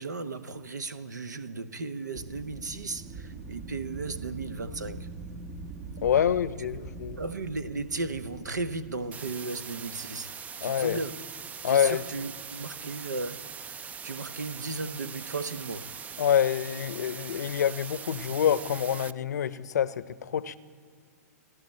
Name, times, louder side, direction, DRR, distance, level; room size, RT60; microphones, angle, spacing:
voice 1, 0.0-5.1 6.6-6.7 7.2-11.2 11.7-15.9, right 3 dB, 85° right, 0.9 m, -35 dB
Wind, 2.1-9.1, right 3 dB, 55° right, 2.0 m, -42 dB
voice 2, 6.0-7.2 10.6-11.0 11.6-12.0 16.2-20.6, left 9 dB, 75° left, 0.7 m, -26 dB
sound 1, 9.1-19.1, right 7 dB, 15° right, 0.3 m, -42 dB
30.0 x 11.0 x 4.3 m
hypercardioid pair, 110°, 9 cm